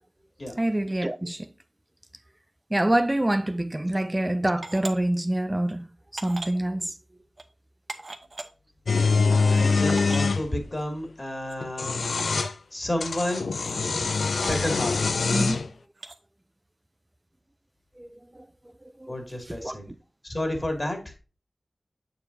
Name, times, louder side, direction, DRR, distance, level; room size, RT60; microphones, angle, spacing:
voice 1, 0.6-1.5 2.7-5.9 6.1-7.0 9.9-10.0 15.3-15.6 18.0-18.7 19.0-19.8, right 1 dB, 20° right, 0.5 m, -26 dB
sound 1, 4.6-4.9 5.7-5.8 6.2-6.6 7.4-7.5 7.9-8.5 9.3-9.4 9.6-9.7 10.0-10.3 11.5-11.6 12.2-12.5 13.5-13.7 14.4-14.7 16.0-16.2, right 2 dB, 60° right, 0.9 m, -38 dB
sound 2, 8.9-10.4 11.6-12.5 13.0-15.7, left 4 dB, 90° left, 0.3 m, -24 dB
voice 2, 9.3-12.0 12.7-14.0 14.5-15.0 19.1-19.8 20.2-21.2, left 1 dB, 40° left, 2.4 m, -31 dB
7.0 x 6.8 x 2.7 m
cardioid pair, 45°, 0 cm